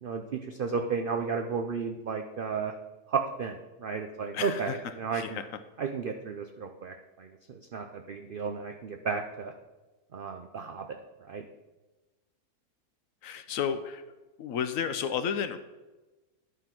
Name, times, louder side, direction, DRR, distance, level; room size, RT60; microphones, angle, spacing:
voice 1, 0.0-2.7 3.1-5.4 5.8-9.5 10.1-10.9 11.3-11.4, right 5 dB, 80° right, 4 dB, 0.4 m, -33 dB
voice 2, 4.3-4.8 5.1-5.4 13.2-14.0 14.4-15.6, left 7 dB, 70° left, 10 dB, 0.9 m, -32 dB
11.5 x 3.8 x 5.8 m, 1.2 s
omnidirectional pair, 1.6 m